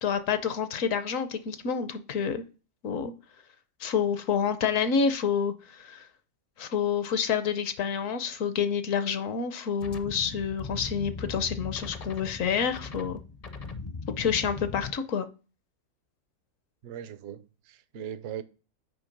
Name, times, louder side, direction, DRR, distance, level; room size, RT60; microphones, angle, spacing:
voice 1, 0.0-2.4 2.8-3.1 3.8-6.1 6.6-13.2 14.2-15.3, left 7 dB, 65° left, 1.1 m, -28 dB
sound 1, 9.8-14.9, left 4 dB, 40° left, 0.5 m, -39 dB
voice 2, 16.8-18.4, right 9 dB, 60° right, 0.7 m, -39 dB
9.2 x 3.2 x 5.2 m
omnidirectional pair, 1.5 m